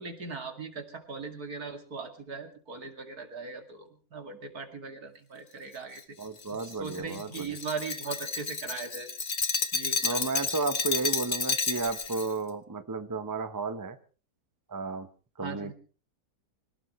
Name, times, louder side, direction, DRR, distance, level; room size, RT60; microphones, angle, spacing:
voice 1, 0.0-6.0 6.6-9.1 9.7-10.2 15.4-15.7, right 4 dB, 70° right, 5 dB, 3.0 m, -39 dB
Glass, 6.0-12.3, left 4 dB, 35° left, 1.2 m, -31 dB
voice 2, 6.2-7.5 10.0-14.0 14.7-15.1 15.4-15.7, right 3 dB, 15° right, 10 dB, 0.7 m, -33 dB
25.5 x 18.0 x 3.2 m, 0.37 s
omnidirectional pair, 1.6 m